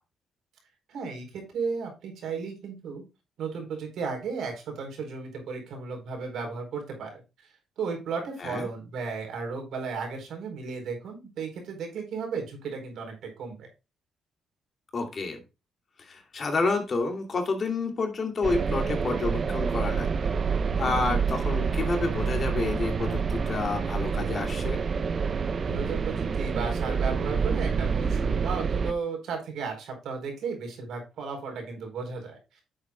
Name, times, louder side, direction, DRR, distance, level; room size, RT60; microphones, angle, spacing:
voice 1, 0.9-3.0 3.4-7.2 7.8-13.7 25.7-32.4, right 5 dB, 75° right, 3 dB, 4.2 m, -34 dB
voice 2, 14.9-15.4 16.0-20.3 20.8-24.8, left 3 dB, 40° left, 3 dB, 2.7 m, -29 dB
sound 1, 18.4-28.9, right 5 dB, 45° right, 0.8 m, -27 dB
9.6 x 7.6 x 2.3 m, 0.27 s
cardioid pair, 90°, 0 cm